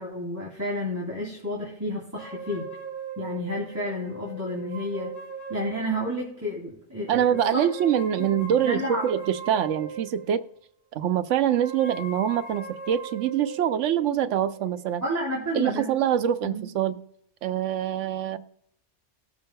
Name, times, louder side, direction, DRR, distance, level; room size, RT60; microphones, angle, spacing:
voice 1, 0.0-2.6 3.2-5.1 5.5-7.7 8.2-9.2 15.0-15.9 16.4-16.6, equal, 15° right, -4 dB, 2.5 m, -31 dB
sound 1, 2.1-6.3 7.1-10.5 11.3-15.7, right 5 dB, 65° left, 4.9 m, -40 dB
voice 2, 7.1-10.4 10.9-15.0 15.5-17.0 17.4-18.4, right 9 dB, 90° right, 10 dB, 1.0 m, -25 dB
19.5 x 7.0 x 2.2 m, 0.71 s
omnidirectional pair, 1.2 m